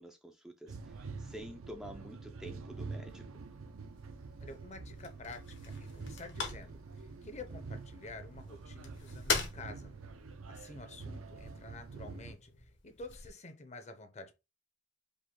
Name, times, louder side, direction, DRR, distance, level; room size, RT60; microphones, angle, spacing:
voice 1, 0.0-3.4, equal, ahead, 0.3 m, -49 dB
sound 1, 0.7-12.3, right 4 dB, 85° right, 0.6 m, -46 dB
sound 2, 3.3-13.3, left 5 dB, 60° left, 1.0 m, -43 dB
voice 2, 4.4-9.9 10.4-14.3, left 3 dB, 35° left, 0.7 m, -49 dB
5.2 x 2.2 x 3.7 m
head